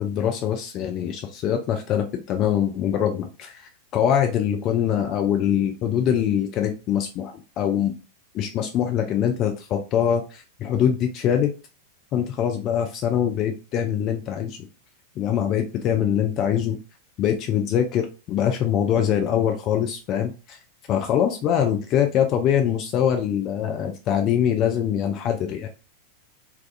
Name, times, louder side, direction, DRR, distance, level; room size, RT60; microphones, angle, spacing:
voice 1, 0.0-8.0 8.3-11.5 12.1-14.6 15.2-16.8 17.2-20.6 20.9-25.7, left 9 dB, 35° left, 4 dB, 0.3 m, -23 dB
2.3 x 2.3 x 2.4 m, 0.32 s
figure-of-eight pair, 90°, 0 cm